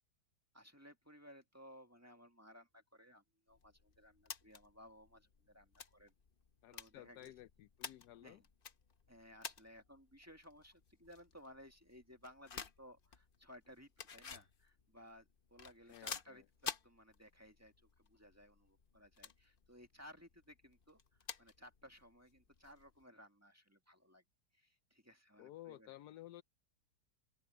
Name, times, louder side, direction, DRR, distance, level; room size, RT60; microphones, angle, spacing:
voice 1, 0.5-6.1 6.7-7.3 8.2-8.5 9.1-24.2 24.5-25.9, equal, 10° right, 1.7 m, -60 dB
sound 1, 3.5-23.0, left 6 dB, 40° left, 0.9 m, -53 dB
voice 2, 6.6-8.4 15.9-16.4 25.4-26.4, left 14 dB, 75° left, 1.1 m, -55 dB
open air
omnidirectional pair, 1.8 m